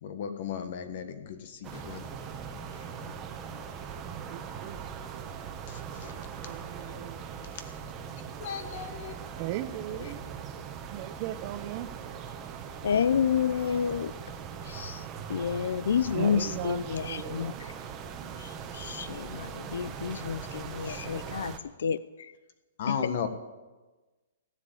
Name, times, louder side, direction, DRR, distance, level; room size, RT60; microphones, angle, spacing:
voice 1, 0.0-2.0 2.7-3.1 5.7-6.2 6.9-7.0 8.4-9.1 9.9-10.2 22.8-23.3, left 7 dB, 50° left, 9 dB, 1.5 m, -36 dB
sound 1, 1.6-21.6, right 7 dB, 20° right, 1.2 m, -40 dB
voice 2, 4.0-4.8 6.0-7.2 9.4-10.2 10.9-11.9 16.1-17.7, right 14 dB, 35° right, 12 dB, 0.8 m, -38 dB
voice 3, 12.8-14.1 14.7-15.0 15.3-17.5 18.4-22.0 22.9-23.1, left 7 dB, 75° left, 17 dB, 0.5 m, -29 dB
16.5 x 7.8 x 8.6 m, 1.2 s
hypercardioid pair, 150°, 0 cm